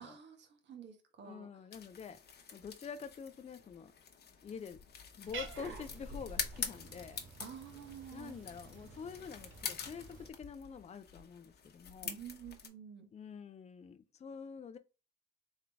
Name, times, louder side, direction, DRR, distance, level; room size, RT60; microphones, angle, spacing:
voice 1, 0.0-1.5 7.4-8.3 12.0-13.1, right 8 dB, 65° right, 1.3 m, -50 dB
voice 2, 1.2-2.2 2.5-3.9 4.4-4.8 5.2-7.2 8.1-12.2 13.1-14.8, left 6 dB, 35° left, 0.5 m, -47 dB
sound 1, 1.7-12.7, left 7 dB, 55° left, 1.0 m, -46 dB
Cat, 5.2-10.3, right 3 dB, 80° right, 1.1 m, -49 dB
3.6 x 3.5 x 3.4 m
cardioid pair, 90°, 20 cm